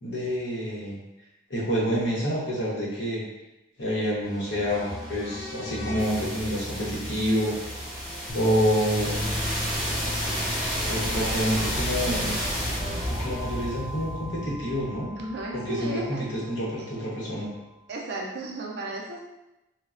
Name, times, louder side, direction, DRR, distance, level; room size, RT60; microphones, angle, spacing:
voice 1, 0.0-1.0 1.5-3.2 3.8-7.5 8.3-9.3 10.8-12.3 13.1-15.1 15.5-17.5, equal, 65° left, -5 dB, 0.8 m, -28 dB
sound 1, 4.2-16.1, equal, 5° right, 0.7 m, -32 dB
sound 2, 8.3-14.5, left 1 dB, 35° left, 0.3 m, -36 dB
voice 2, 15.2-16.3 16.8-16.9 17.9-19.2, right 2 dB, 55° right, -2 dB, 0.3 m, -34 dB
3.1 x 2.1 x 2.4 m, 0.98 s
head